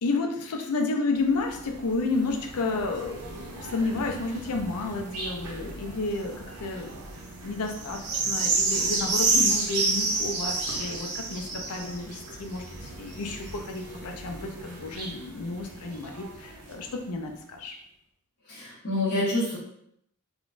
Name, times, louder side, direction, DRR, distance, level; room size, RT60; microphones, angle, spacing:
voice 1, 0.0-6.9 7.4-17.8, left 3 dB, 85° left, 3 dB, 0.5 m, -31 dB
sound 1, 1.2-17.0 17.6-17.7, right 3 dB, 85° right, 0.7 m, -31 dB
voice 2, 18.5-19.6, left 1 dB, 55° left, -9 dB, 1.1 m, -27 dB
3.7 x 2.3 x 2.5 m, 0.74 s
head